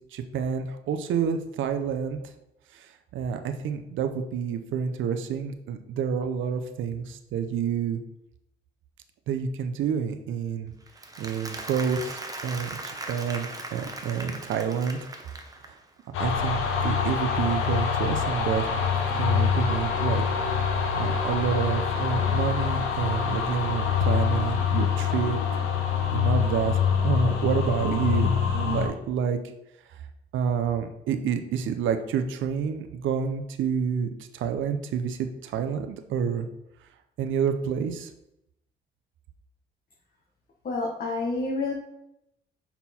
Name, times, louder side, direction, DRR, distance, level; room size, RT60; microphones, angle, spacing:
voice 1, 0.1-2.3 2.7-8.0 9.3-10.7 11.2-15.0 15.6-15.7 16.2-18.7 19.1-20.2 20.9-25.6 26.1-29.4 29.9-30.0 30.3-36.5 37.2-38.1, right 7 dB, 75° right, 7 dB, 0.6 m, -28 dB
Applause, 10.9-15.9, right 2 dB, 20° right, 0.9 m, -39 dB
sound 1, 16.1-28.9, left 7 dB, 85° left, 1.0 m, -25 dB
voice 2, 40.6-41.7, left 3 dB, 45° left, -2 dB, 1.2 m, -28 dB
5.6 x 4.4 x 4.2 m, 0.84 s
cardioid pair, 90°, 20 cm